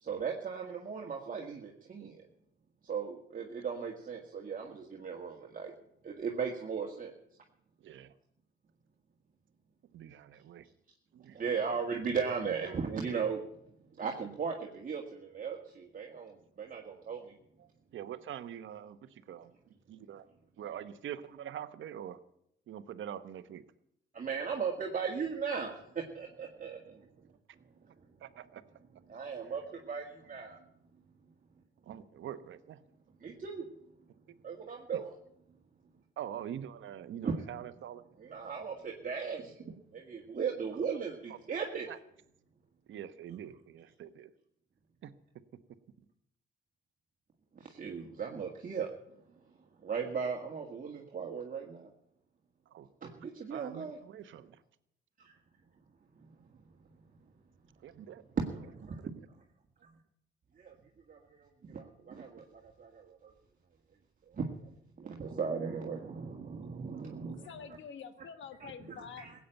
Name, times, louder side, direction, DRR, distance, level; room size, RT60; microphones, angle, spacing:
voice 1, 0.0-2.2 2.8-5.7 6.0-7.1 11.3-13.4 14.0-17.3 24.1-27.1 29.1-30.6 33.2-33.7 34.4-35.1 37.2-37.3 38.2-41.9 47.6-48.9 49.8-51.9 53.0-54.0 55.2-55.3 58.4-59.0 60.6-60.8 61.1-63.3 64.3-64.5 65.0-67.5 68.6-68.7 69.0-69.3, right 6 dB, 45° right, 0 dB, 1.9 m, -37 dB
voice 2, 9.9-10.7 11.1-11.4 17.6-19.5 19.9-20.3 20.6-22.2 22.7-23.6 28.2-28.6 31.8-32.8 34.3-34.4 36.2-38.0 41.9-42.0 42.9-44.3 45.0-45.1 52.7-52.9 53.5-54.6 57.8-58.2 59.0-59.2, right 10 dB, 75° right, 12 dB, 1.1 m, -44 dB
voice 3, 67.2-69.3, left 7 dB, 70° left, 11 dB, 1.5 m, -47 dB
16.0 x 8.6 x 9.0 m, 0.74 s
cardioid pair, 75°, 20 cm